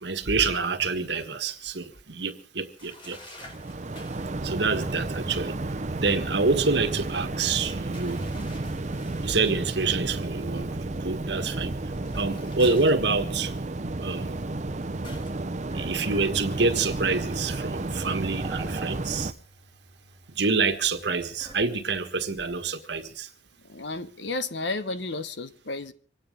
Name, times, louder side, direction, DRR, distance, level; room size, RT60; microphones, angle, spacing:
voice 1, 0.0-3.2 4.4-5.6 5.9-8.2 9.2-11.7 12.1-13.5 14.0-14.4 15.7-19.3 20.3-23.3, right 4 dB, 65° right, 1.5 m, -27 dB
sound 1, 2.8-4.4 7.9-9.5 11.8-13.6 15.0-15.4, left 1 dB, 25° left, 2.9 m, -48 dB
sound 2, 3.4-19.3, right 2 dB, 40° right, 0.7 m, -32 dB
sound 3, 12.8-21.7, right 4 dB, 25° right, 1.8 m, -49 dB
voice 2, 23.7-25.9, left 3 dB, 70° left, 1.1 m, -32 dB
25.5 x 9.5 x 5.0 m
head